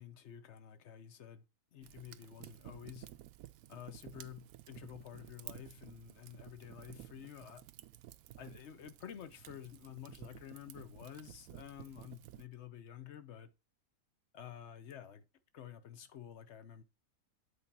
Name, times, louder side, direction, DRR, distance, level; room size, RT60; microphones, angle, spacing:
voice 1, 0.0-1.4 1.7-3.1 3.7-7.7 8.4-13.5 14.3-15.2 15.5-16.8, left 10 dB, 55° left, 1.0 m, -50 dB
Fire, 1.8-12.5, right 14 dB, 75° right, 1.0 m, -54 dB
8.3 x 4.4 x 4.1 m
omnidirectional pair, 1.6 m